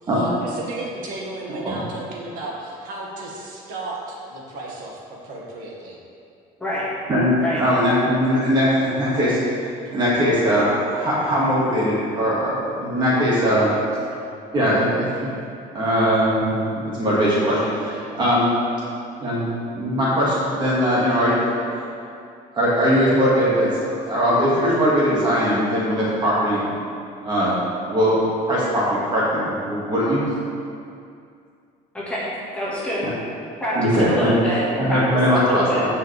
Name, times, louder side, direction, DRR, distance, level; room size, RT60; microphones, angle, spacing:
voice 1, 0.0-6.0, right 2 dB, 60° right, -3 dB, 2.1 m, -34 dB
voice 2, 7.1-13.7 14.5-15.4 15.7-18.5 19.2-19.5 19.7-21.6 22.5-26.7 27.2-27.6 27.9-28.2 28.5-30.2 33.8-34.3 34.8-35.9, equal, 30° right, -7 dB, 2.1 m, -20 dB
voice 3, 31.9-32.3 32.5-33.1 33.6-35.8, equal, 5° left, -9 dB, 1.9 m, -26 dB
15.5 x 5.5 x 3.5 m, 2.4 s
cardioid pair, 155°, 16 cm